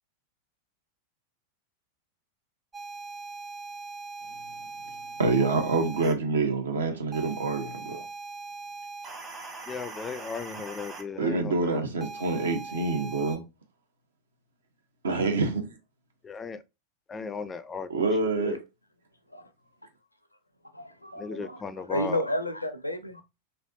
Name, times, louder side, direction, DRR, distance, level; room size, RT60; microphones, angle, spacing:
sound 1, 2.7-6.1 7.1-11.0 12.0-13.4, right 3 dB, 20° right, 0.9 m, -41 dB
voice 1, 5.2-8.0 11.2-13.4 15.0-15.7 17.9-18.6, right 3 dB, 70° right, 0.8 m, -26 dB
voice 2, 9.7-11.8 16.2-16.6 17.1-18.0 18.4-18.6 21.2-22.2, left 5 dB, 20° left, 0.3 m, -36 dB
voice 3, 20.7-23.2, left 1 dB, 85° left, 0.5 m, -32 dB
3.3 x 2.6 x 2.6 m
figure-of-eight pair, 90°, 0 cm